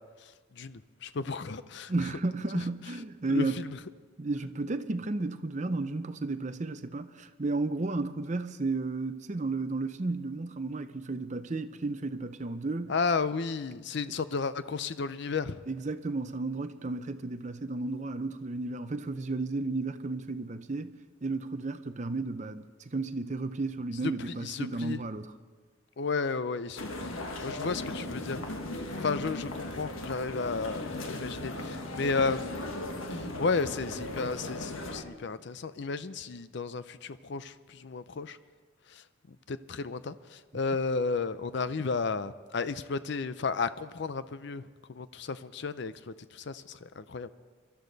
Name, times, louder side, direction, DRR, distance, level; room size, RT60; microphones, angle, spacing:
voice 1, 0.2-2.1 2.5-2.7 3.3-3.8 12.9-15.6 24.0-25.0 26.0-28.4 29.0-32.8 33.1-38.4 38.9-47.3, left 4 dB, 55° left, 0.5 m, -33 dB
voice 2, 1.9-3.6 4.2-12.9 15.7-20.9 21.2-25.3, right 3 dB, 35° right, 0.6 m, -33 dB
sound 1, 26.8-35.0, left 1 dB, 80° left, 1.4 m, -37 dB
23.0 x 12.5 x 4.0 m
head